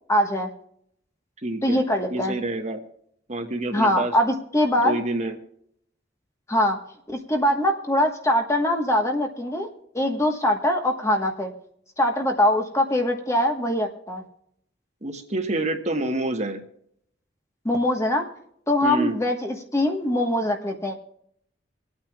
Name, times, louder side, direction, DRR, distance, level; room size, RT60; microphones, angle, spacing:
voice 1, 0.1-0.5 1.6-2.3 3.7-5.0 6.5-6.8 7.1-9.7 9.9-11.5 12.0-14.2 17.6-18.3 18.7-20.9, left 1 dB, 15° left, 3 dB, 1.2 m, -22 dB
voice 2, 1.4-1.8 2.1-2.8 3.3-4.1 4.8-5.4 15.0-16.6 18.8-19.2, right 2 dB, 40° right, 5 dB, 1.3 m, -27 dB
26.5 x 8.9 x 2.3 m, 0.70 s
head